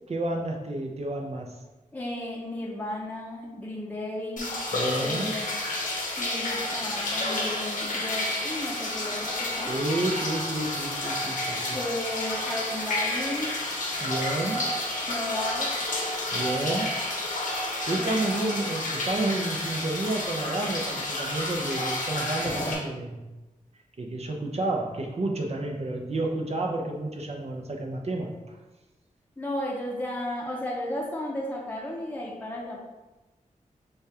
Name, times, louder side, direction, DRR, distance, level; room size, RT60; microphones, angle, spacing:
voice 1, 0.1-1.5 4.7-5.4 9.7-11.8 14.0-14.7 16.3-16.9 17.9-23.3 24.0-28.6, right 2 dB, 50° right, 1 dB, 0.7 m, -30 dB
voice 2, 1.9-4.5 5.0-5.5 6.2-9.8 11.7-13.5 15.0-15.7 17.9-18.5 29.4-32.8, left 1 dB, 10° left, -3 dB, 0.7 m, -34 dB
sound 1, 4.4-22.7, left 1 dB, 75° left, 1.0 m, -30 dB
6.4 x 2.4 x 2.9 m, 1.1 s
wide cardioid pair, 100°, 14 cm